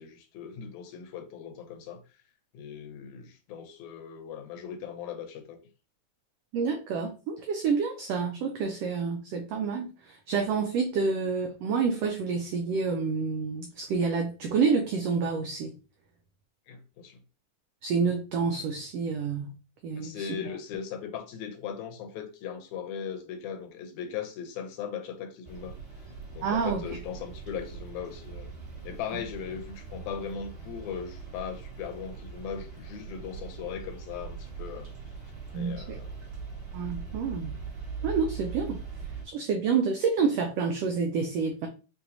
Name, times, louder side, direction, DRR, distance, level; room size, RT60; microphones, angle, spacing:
voice 1, 0.0-2.0 2.5-5.6 16.7-17.2 20.0-25.8 26.3-28.5 28.8-34.9 35.5-36.1, left 7 dB, 80° left, 2.0 m, -38 dB
voice 2, 6.5-15.7 17.8-19.5 19.8-20.3 26.4-26.8 35.5-36.0 36.7-37.6 38.0-38.8 39.2-41.7, right 5 dB, 90° right, 1.4 m, -28 dB
sound 1, 25.4-39.2, right 5 dB, 45° right, 2.3 m, -41 dB
5.8 x 2.7 x 2.6 m
omnidirectional pair, 3.5 m